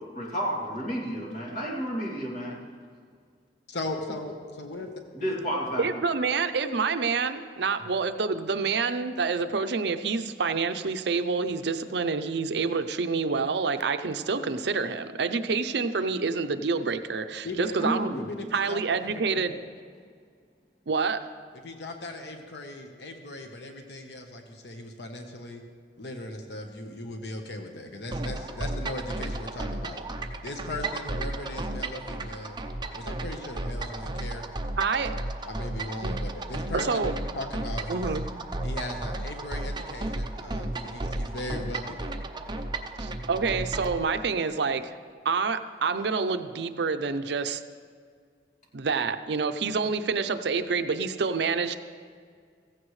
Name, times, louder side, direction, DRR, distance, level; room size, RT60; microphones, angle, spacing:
voice 1, 0.1-2.6 5.2-5.8 17.8-18.3, equal, 45° left, -3 dB, 2.6 m, -31 dB
voice 2, 3.7-4.9 7.8-7.9 17.4-19.5 21.6-25.6 26.0-30.1 30.4-32.6 32.9-34.5 35.4-37.1 37.3-38.1 38.6-42.1, left 2 dB, 65° left, 4 dB, 1.1 m, -38 dB
voice 3, 5.8-18.1 18.5-19.6 20.9-21.2 34.8-35.1 36.0-36.1 36.7-37.1 37.9-38.2 43.0-44.9 45.2-47.6 48.7-51.7, right 4 dB, 65° right, 9 dB, 0.6 m, -27 dB
sound 1, 28.1-44.0, right 2 dB, 25° right, 0.6 m, -34 dB
16.0 x 15.0 x 3.2 m, 2.1 s
head